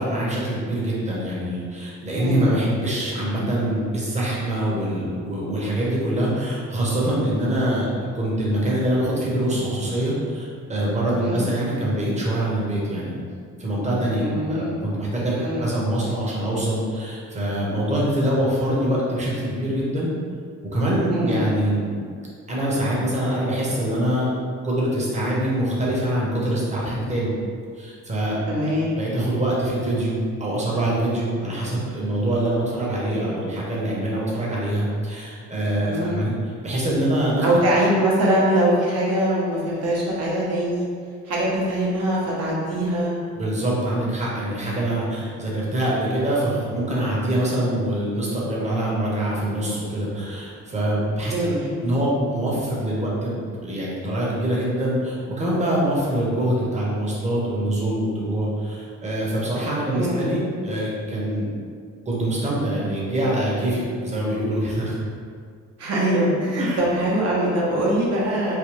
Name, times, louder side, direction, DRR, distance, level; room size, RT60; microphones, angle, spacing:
voice 1, 0.0-7.9 8.1-13.2 13.6-20.1 20.7-22.0 22.5-24.3 24.6-27.3 27.8-28.4 28.9-36.3 36.6-37.4 43.3-51.5 51.8-61.5 62.1-65.0 66.6-66.8, right 1 dB, 25° right, -6 dB, 1.0 m, -24 dB
voice 2, 2.2-2.5 11.2-11.5 14.2-14.7 15.4-15.7 21.1-21.5 28.5-28.9 35.8-36.2 37.4-40.9 41.2-43.1 51.2-51.7 59.9-60.3 65.8-68.5, right 1 dB, 55° right, -6 dB, 1.0 m, -22 dB
3.3 x 2.2 x 3.2 m, 2.2 s
cardioid pair, 90°, 30 cm